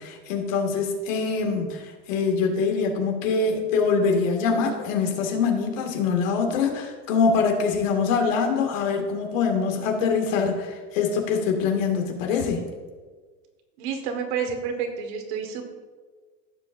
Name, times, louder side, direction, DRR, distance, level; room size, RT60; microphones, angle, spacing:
voice 1, 0.0-12.6, left 5 dB, 75° left, 2 dB, 2.2 m, -24 dB
voice 2, 13.8-15.7, right 6 dB, 60° right, 5 dB, 1.8 m, -29 dB
16.0 x 7.4 x 2.6 m, 1.4 s
supercardioid pair, 150°, 39 cm